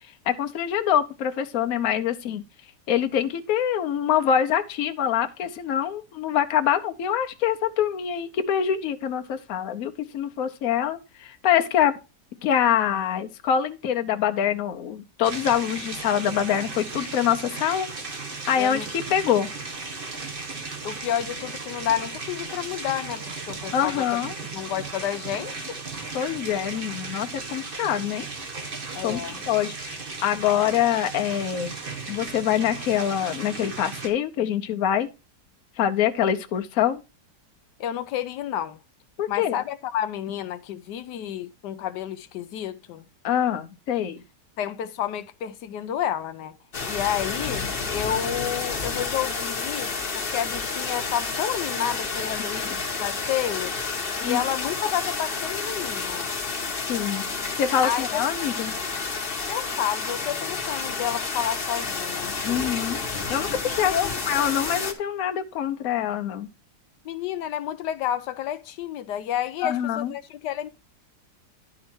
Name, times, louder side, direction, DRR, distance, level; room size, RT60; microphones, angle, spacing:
voice 1, 0.3-2.4 2.9-11.9 12.4-17.9 18.5-19.5 23.7-24.3 26.1-28.2 29.0-29.2 29.5-29.9 30.2-31.7 32.1-35.1 35.8-37.0 39.2-39.6 43.2-44.2 52.3-52.8 54.2-54.4 56.9-57.3 57.6-58.7 62.4-63.0 63.3-63.9 64.3-66.5 69.6-70.1, left 9 dB, 65° left, 1.1 m, -25 dB
sound 1, 15.2-34.1, right 3 dB, 35° right, 1.2 m, -36 dB
voice 2, 20.8-24.2 24.5-25.8 28.9-29.4 37.8-38.8 39.3-43.1 44.6-46.6 46.9-53.8 54.2-56.3 57.8-58.2 59.5-62.3 63.8-64.4 67.0-70.7, left 10 dB, 90° left, 1.3 m, -30 dB
sound 2, 46.7-64.9, left 4 dB, 40° left, 1.2 m, -30 dB
11.0 x 4.9 x 4.4 m
omnidirectional pair, 1.8 m